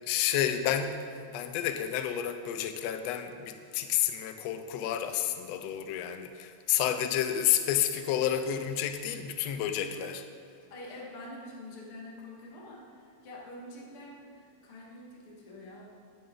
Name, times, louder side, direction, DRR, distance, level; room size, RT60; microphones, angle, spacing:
voice 1, 0.0-1.0 1.3-10.2, left 10 dB, 75° left, 8 dB, 1.7 m, -30 dB
voice 2, 9.8-10.1 10.7-15.9, left 1 dB, 50° left, -2 dB, 2.4 m, -46 dB
12.0 x 11.0 x 3.9 m, 2.4 s
omnidirectional pair, 3.3 m